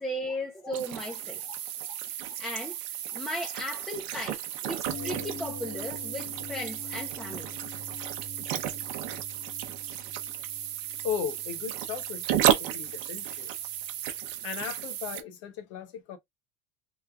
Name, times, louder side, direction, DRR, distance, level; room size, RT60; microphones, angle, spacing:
voice 1, 0.0-1.4 2.4-2.8 3.1-7.8, equal, 5° left, 0.5 m, -36 dB
sound 1, 0.7-15.2, right 11 dB, 55° right, 0.6 m, -33 dB
voice 2, 1.4-2.0 11.0-13.5 14.4-16.2, left 8 dB, 85° left, 0.7 m, -37 dB
sound 2, 4.9-14.8 15.1-15.2, left 3 dB, 55° left, 1.6 m, -46 dB
3.1 x 2.3 x 3.4 m
cardioid pair, 175°, 16 cm